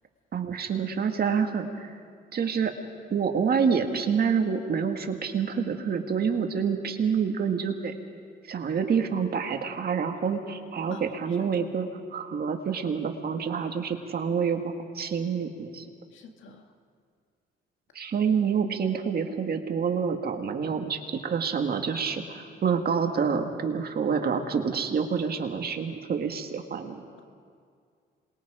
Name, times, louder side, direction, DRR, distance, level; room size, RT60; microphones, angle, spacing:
voice 1, 0.3-1.9 2.3-2.7 3.1-7.9 8.5-11.9 12.1-14.6 15.0-15.8 18.0-27.0, right 6 dB, 50° right, 5 dB, 1.9 m, -27 dB
voice 2, 10.9-11.5 16.1-16.7, left 2 dB, 75° left, 4 dB, 1.9 m, -45 dB
27.0 x 21.0 x 5.0 m, 2.2 s
cardioid pair, 90°, 20 cm